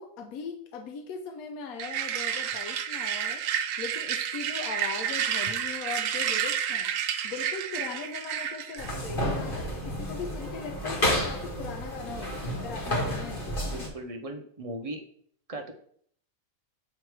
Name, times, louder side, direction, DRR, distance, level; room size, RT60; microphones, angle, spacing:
voice 1, 0.0-3.4 3.8-6.9 7.2-13.7, left 5 dB, 90° left, 3 dB, 1.1 m, -39 dB
sound 1, 1.8-8.9, right 9 dB, 70° right, 0.9 m, -30 dB
sound 2, 8.8-13.9, equal, 40° left, 1.6 m, -31 dB
voice 2, 13.6-15.0 15.5-15.7, right 1 dB, 40° right, 4 dB, 0.5 m, -38 dB
8.0 x 3.2 x 4.6 m, 0.62 s
omnidirectional pair, 1.5 m